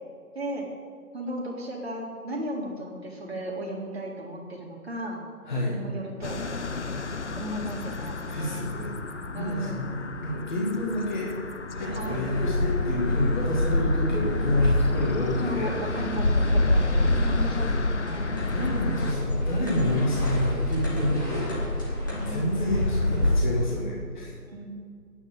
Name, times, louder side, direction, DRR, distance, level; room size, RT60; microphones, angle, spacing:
voice 1, 0.3-0.7 1.1-5.2 5.7-6.4 7.4-8.7 9.3-9.8 11.9-12.3 15.4-18.3 22.1-23.0 24.5-24.7, equal, 40° right, -1 dB, 2.3 m, -35 dB
voice 2, 5.4-5.8 8.3-11.4 11.7-16.1 18.5-21.9 22.3-24.4, left 1 dB, 30° left, -4 dB, 1.8 m, -29 dB
sound 1, 6.2-19.1, left 4 dB, 50° left, 0.7 m, -34 dB
sound 2, 11.8-23.4, left 1 dB, 15° left, 1.1 m, -26 dB
9.0 x 6.1 x 8.4 m, 2.1 s
figure-of-eight pair, 155°, 46 cm